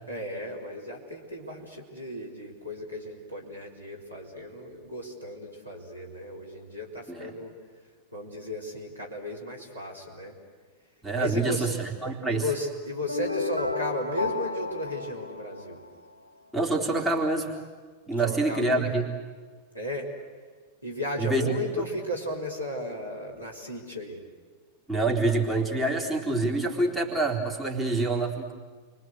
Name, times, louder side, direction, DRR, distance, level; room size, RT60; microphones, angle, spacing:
voice 1, 0.1-7.6 8.1-10.4 11.1-11.7 12.3-15.8 18.1-18.9 19.7-20.1 20.8-24.2, left 1 dB, 90° right, -1 dB, 4.2 m, -35 dB
voice 2, 11.0-12.4 16.5-17.5 18.1-19.1 21.2-21.6 24.9-28.5, right 2 dB, 5° right, -3 dB, 3.8 m, -26 dB
sound 1, 13.1-16.1, left 3 dB, 80° left, 1.3 m, -32 dB
29.5 x 23.5 x 8.2 m, 1.5 s
figure-of-eight pair, 90°, 0 cm